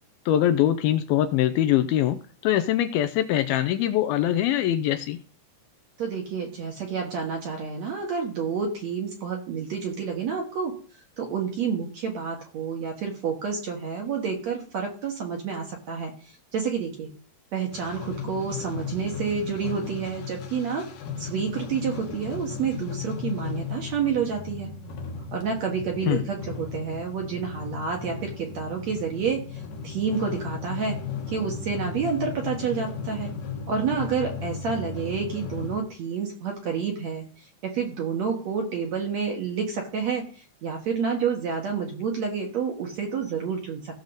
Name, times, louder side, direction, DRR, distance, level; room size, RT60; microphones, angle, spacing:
voice 1, 0.3-5.2 26.1-26.2, left 12 dB, 80° left, 10 dB, 2.3 m, -23 dB
voice 2, 6.0-10.7 11.2-17.1 17.5-20.9 21.2-24.7 25.3-31.0 31.3-33.3 33.7-43.9, right 6 dB, 60° right, 1 dB, 2.0 m, -29 dB
sound 1, 17.7-35.8, left 6 dB, 65° left, 2.7 m, -36 dB
16.5 x 6.5 x 3.9 m, 0.41 s
omnidirectional pair, 4.7 m